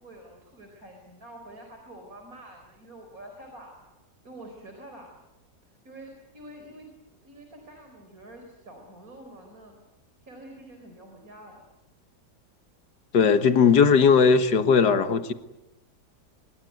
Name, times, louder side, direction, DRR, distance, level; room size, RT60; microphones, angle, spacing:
voice 1, 0.0-5.1 5.7-9.8 10.2-11.6, right 1 dB, 55° right, 4.6 m, -47 dB
voice 2, 13.1-15.3, left 5 dB, 85° left, 2.0 m, -18 dB
25.5 x 22.0 x 9.3 m
omnidirectional pair, 1.8 m